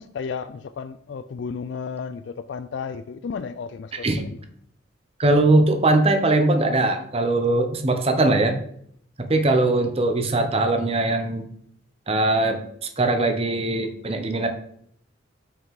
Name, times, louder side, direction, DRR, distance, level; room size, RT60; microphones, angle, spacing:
voice 1, 0.0-4.4, left 5 dB, 60° left, 0.3 m, -33 dB
voice 2, 3.9-4.2 5.2-8.6 9.2-11.4 12.1-12.6 13.0-14.5, right 2 dB, 30° right, 0.8 m, -20 dB
5.7 x 5.7 x 4.8 m
head